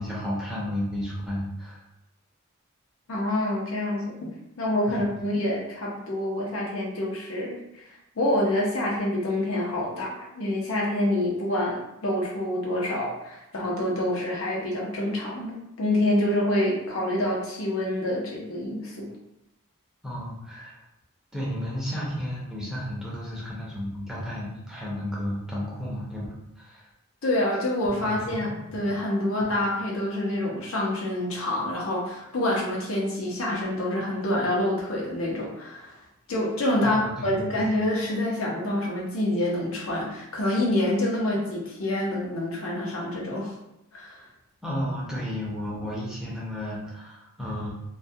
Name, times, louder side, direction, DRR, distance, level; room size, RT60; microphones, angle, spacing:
voice 1, 0.0-1.8 4.9-5.1 20.0-20.8 21.3-26.3 26.6-26.8 27.9-28.8 29.4-29.6 36.8-37.7 44.6-47.7, left 1 dB, 5° right, -7 dB, 0.5 m, -33 dB
voice 2, 3.1-7.9 8.2-19.1 27.2-36.0 36.3-43.5 43.9-44.2, left 1 dB, 80° left, -3 dB, 0.7 m, -27 dB
2.2 x 2.2 x 2.6 m, 0.86 s
head